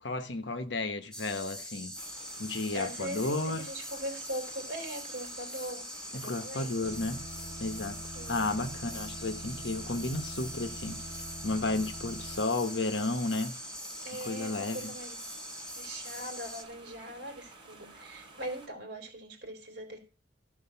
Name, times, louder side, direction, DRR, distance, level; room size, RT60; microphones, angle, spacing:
voice 1, 0.0-1.9 2.4-3.6 6.1-7.3 7.6-8.0 8.3-11.0 11.4-13.5 14.2-14.9, left 2 dB, 75° left, 1.1 m, -32 dB
sound 1, 1.1-16.6, equal, 5° left, 1.4 m, -42 dB
sound 2, 1.9-18.7, right 2 dB, 25° right, 3.3 m, -53 dB
voice 2, 2.7-5.9 6.1-7.0 8.1-8.5 14.0-15.2 15.7-20.0, equal, 60° right, 3.3 m, -41 dB
sound 3, 6.8-12.4, right 1 dB, 35° left, 5.7 m, -45 dB
13.5 x 4.8 x 5.7 m
head